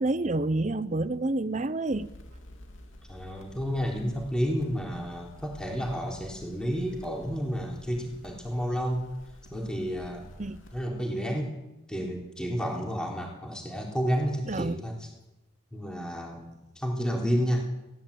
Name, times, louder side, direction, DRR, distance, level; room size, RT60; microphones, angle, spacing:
voice 1, 0.0-2.1 10.4-10.6 14.5-14.8, right 2 dB, 35° right, 15 dB, 0.6 m, -28 dB
sound 1, 1.9-10.9, left 1 dB, 70° left, 3.0 m, -50 dB
voice 2, 3.1-9.0 9.5-10.3 10.7-11.5 11.9-15.1 15.7-17.7, equal, 5° left, -1 dB, 3.7 m, -31 dB
20.5 x 17.0 x 8.7 m, 0.96 s
head